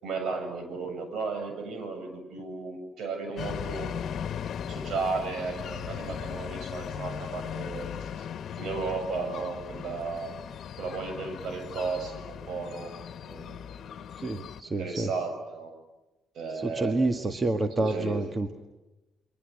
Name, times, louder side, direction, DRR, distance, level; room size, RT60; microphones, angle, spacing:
voice 1, 0.0-3.9 4.7-8.3 8.6-10.3 10.8-12.9 13.2-14.1 14.8-15.7 16.3-16.9 17.8-18.2, right 4 dB, 75° right, 6 dB, 7.5 m, -34 dB
sound 1, 3.4-14.6, left 8 dB, 65° left, 1.3 m, -38 dB
voice 2, 14.2-15.1 16.6-18.5, right 2 dB, 30° right, 7 dB, 1.7 m, -28 dB
29.5 x 23.5 x 8.3 m, 1.0 s
cardioid pair, 90°, 0 cm